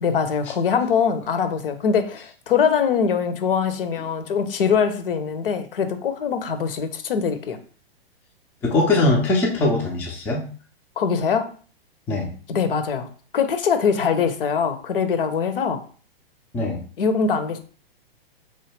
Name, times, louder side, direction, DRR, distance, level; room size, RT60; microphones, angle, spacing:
voice 1, 0.0-7.6 11.0-11.5 12.5-13.1 13.3-15.8 17.0-17.6, left 6 dB, 65° left, 8 dB, 0.6 m, -22 dB
voice 2, 8.6-10.4 12.1-12.3 16.5-16.8, left 2 dB, 5° left, -2 dB, 0.3 m, -21 dB
3.1 x 2.1 x 3.2 m, 0.41 s
figure-of-eight pair, 110°, 30 cm